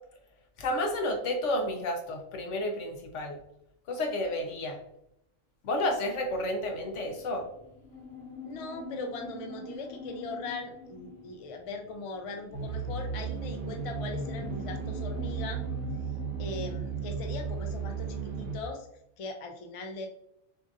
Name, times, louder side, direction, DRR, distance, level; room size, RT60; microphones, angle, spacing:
voice 1, 0.6-3.4 3.9-4.8 5.6-7.5, left 1 dB, 75° left, 3 dB, 1.1 m, -31 dB
sound 1, 6.3-17.3, left 3 dB, 60° left, 1.4 m, -46 dB
voice 2, 8.4-15.6 16.4-18.9 19.2-20.1, left 3 dB, 45° left, 4 dB, 0.4 m, -40 dB
sound 2, 12.5-18.6, right 5 dB, 50° right, 0.9 m, -35 dB
6.7 x 2.6 x 2.5 m, 0.78 s
omnidirectional pair, 1.2 m